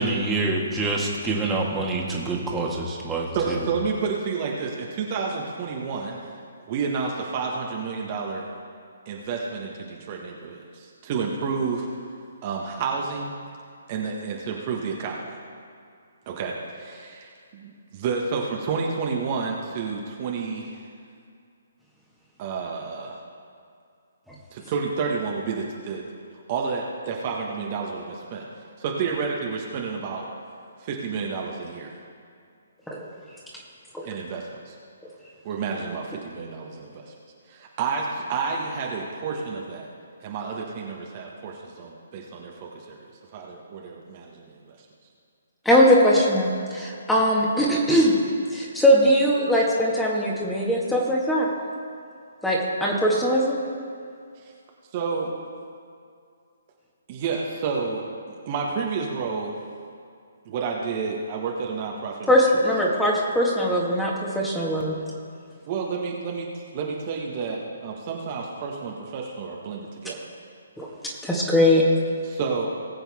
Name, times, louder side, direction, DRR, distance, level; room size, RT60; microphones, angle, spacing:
voice 1, 0.0-3.6, right 2 dB, 10° right, -2 dB, 1.9 m, -26 dB
voice 2, 3.3-6.4 6.7-8.5 9.0-11.9 12.4-13.3 13.9-15.2 16.2-20.8 22.4-23.2 24.5-26.0 26.5-28.4 28.8-30.2 30.8-31.9 34.0-34.8 35.4-37.1 37.5-39.9 40.2-43.1 43.3-44.8 54.4-54.5 54.9-55.3 57.1-58.1 58.4-59.6 60.4-62.7 65.7-70.2 72.2-72.7, right 5 dB, 35° right, -1 dB, 1.5 m, -30 dB
voice 3, 45.7-48.1 48.5-51.5 52.4-53.6 62.3-65.0 70.8-70.9 71.2-71.8, equal, 5° left, -4 dB, 1.9 m, -20 dB
20.0 x 7.9 x 3.7 m, 2.3 s
figure-of-eight pair, 135°, 0 cm